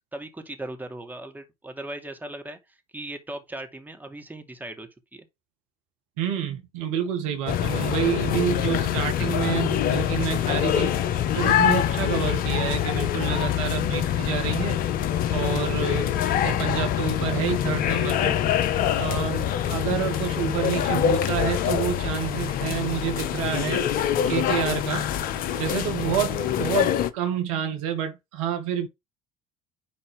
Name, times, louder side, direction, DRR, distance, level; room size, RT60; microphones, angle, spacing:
voice 1, 0.1-5.2, right 1 dB, 10° right, 2.6 m, -38 dB
voice 2, 6.2-10.9 11.4-14.8 15.3-18.4 18.9-23.8 24.3-25.1 25.6-28.9, right 9 dB, 70° right, 1.7 m, -28 dB
sound 1, 7.5-27.1, left 10 dB, 55° left, 1.0 m, -25 dB
10.0 x 4.2 x 3.4 m
hypercardioid pair, 65°, 17 cm